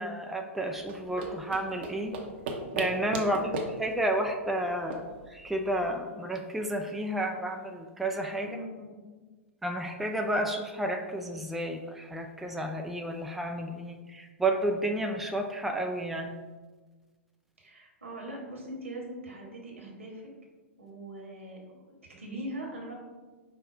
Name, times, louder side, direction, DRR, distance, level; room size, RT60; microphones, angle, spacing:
voice 1, 0.0-2.1 2.7-3.4 3.8-8.5 9.6-16.4, right 1 dB, 5° right, 3 dB, 0.3 m, -31 dB
sound 1, 0.8-6.0, right 3 dB, 50° right, 0.7 m, -38 dB
voice 2, 3.3-3.7 8.4-8.9 17.6-20.3 20.8-22.9, right 1 dB, 80° right, -2 dB, 1.3 m, -41 dB
5.3 x 2.2 x 4.3 m, 1.3 s
figure-of-eight pair, 100°, 7 cm